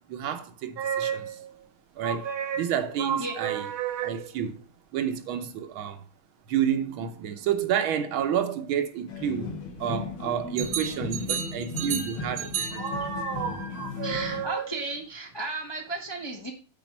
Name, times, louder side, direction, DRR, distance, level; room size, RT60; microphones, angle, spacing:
voice 1, 0.1-1.4 2.0-3.7 4.0-4.6 4.9-6.0 6.5-9.5 9.8-13.1, right 9 dB, 85° right, 1.7 m, -30 dB
sound 1, 0.8-1.5 2.0-4.5 10.6-15.0, right 8 dB, 60° right, 1.2 m, -32 dB
sound 2, 9.1-14.5, left 4 dB, 75° left, 1.9 m, -36 dB
voice 2, 14.0-16.5, right 3 dB, 20° left, 0.6 m, -34 dB
7.5 x 4.3 x 5.9 m
omnidirectional pair, 2.2 m